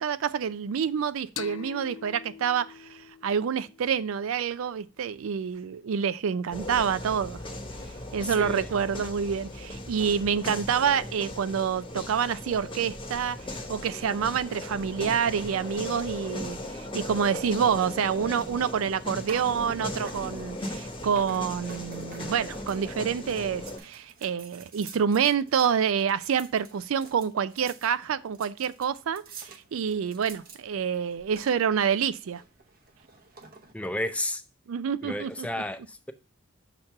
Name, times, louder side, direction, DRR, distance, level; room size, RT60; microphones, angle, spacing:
voice 1, 0.0-7.4 8.1-32.4 34.7-35.5, right 7 dB, 75° right, 0.4 m, -27 dB
sound 1, 1.4-4.7, left 9 dB, 65° left, 0.3 m, -44 dB
sound 2, 6.5-23.8, left 1 dB, 25° left, 0.9 m, -38 dB
voice 2, 8.2-8.7 33.7-34.4 35.0-36.1, left 1 dB, 5° left, 0.5 m, -32 dB
sound 3, 17.8-33.7, right 4 dB, 45° right, 0.8 m, -49 dB
6.5 x 3.0 x 5.7 m
head